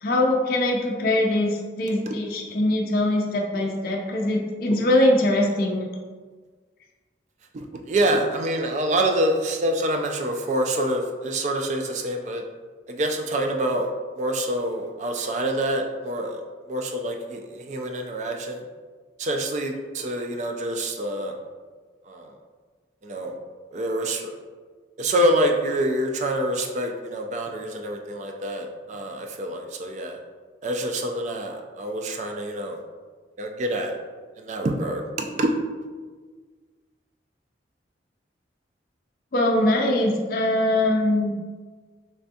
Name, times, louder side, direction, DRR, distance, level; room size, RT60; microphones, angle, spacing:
voice 1, 0.0-5.9 39.3-41.3, left 1 dB, 50° left, 0 dB, 0.4 m, -22 dB
voice 2, 7.5-12.4 12.9-13.9 14.2-16.4 16.7-18.6 19.2-21.3 22.1-22.3 23.0-23.3 23.7-24.3 25.0-30.2 30.6-32.8 33.4-33.9 34.4-35.5, right 1 dB, 40° right, 3 dB, 0.3 m, -26 dB
3.4 x 3.2 x 2.7 m, 1.5 s
head